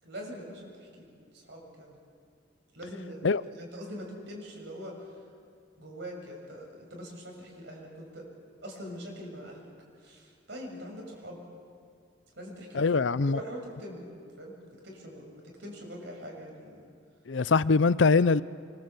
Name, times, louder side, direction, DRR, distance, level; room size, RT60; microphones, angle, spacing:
voice 1, 0.0-2.0 2.7-5.0 5.8-8.2 8.6-9.7 10.0-11.4 12.3-12.8 13.2-14.5 14.8-16.9, equal, 65° right, 7.0 m, -43 dB
voice 2, 12.7-13.4 17.3-18.4, left 4 dB, 75° left, 0.6 m, -23 dB
26.0 x 25.0 x 8.3 m
head